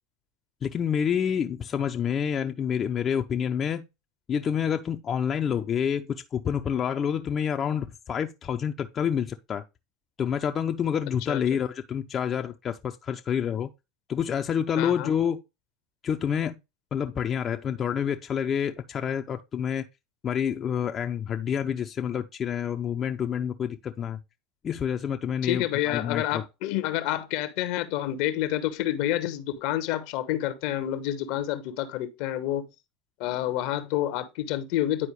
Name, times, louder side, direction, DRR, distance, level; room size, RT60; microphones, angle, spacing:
voice 1, 0.6-3.9 4.3-9.6 10.2-13.7 14.1-15.4 16.0-16.6 16.9-19.8 20.2-24.2 24.6-26.4, left 8 dB, 35° left, 0.6 m, -28 dB
voice 2, 14.8-15.1 25.4-32.7 33.2-35.1, left 13 dB, 60° left, 0.9 m, -28 dB
10.0 x 4.5 x 3.1 m
hypercardioid pair, 80°, 0 cm